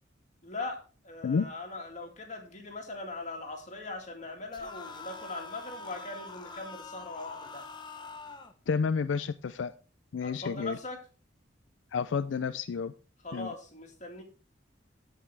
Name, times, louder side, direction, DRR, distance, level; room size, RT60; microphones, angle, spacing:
voice 1, 0.4-7.7 10.2-11.0 13.2-14.2, left 2 dB, 40° left, 2 dB, 2.1 m, -40 dB
sound 1, 4.5-8.5, left 3 dB, 25° left, 1.0 m, -45 dB
voice 2, 8.7-9.7 10.1-10.8 11.9-12.9 13.3-13.5, left 5 dB, 85° left, 12 dB, 0.4 m, -30 dB
14.5 x 5.4 x 3.3 m, 0.36 s
head